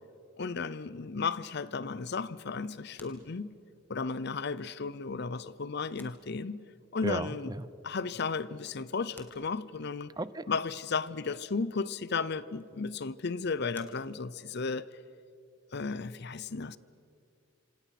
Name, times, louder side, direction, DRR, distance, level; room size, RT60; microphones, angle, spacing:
voice 1, 0.4-3.5 3.9-6.6 6.9-7.5 7.8-10.1 10.5-14.9 15.7-16.8, left 4 dB, 55° left, 0.7 m, -34 dB
sound 1, 2.2-15.0, left 2 dB, 10° left, 2.0 m, -63 dB
voice 2, 7.0-7.7 10.2-10.5, right 2 dB, 20° right, 0.6 m, -34 dB
26.5 x 26.5 x 6.0 m
head